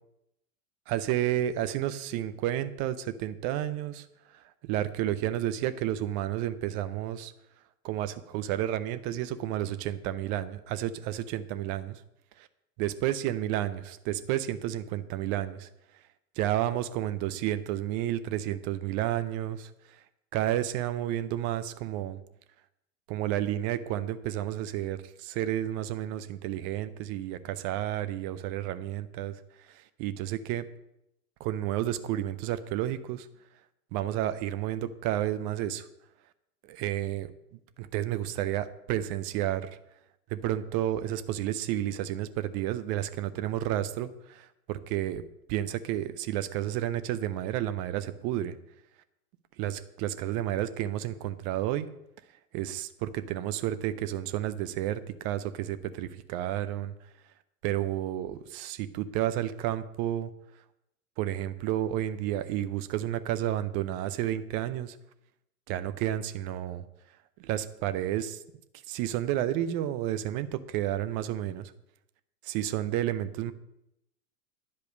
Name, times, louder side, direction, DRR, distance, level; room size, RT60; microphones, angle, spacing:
voice 1, 0.9-7.3 7.8-12.0 12.4-12.5 12.8-15.7 16.4-20.0 20.3-22.2 23.1-29.4 29.7-30.7 31.4-33.3 33.9-35.9 36.6-37.3 37.8-39.7 40.3-45.2 45.5-48.5 49.6-51.9 52.5-56.9 57.6-60.3 61.2-65.0 65.7-66.8 67.4-68.4 68.9-71.7 72.4-73.5, right 12 dB, 20° right, 13 dB, 0.4 m, -31 dB
10.5 x 5.3 x 8.0 m, 0.82 s
hypercardioid pair, 110°, 46 cm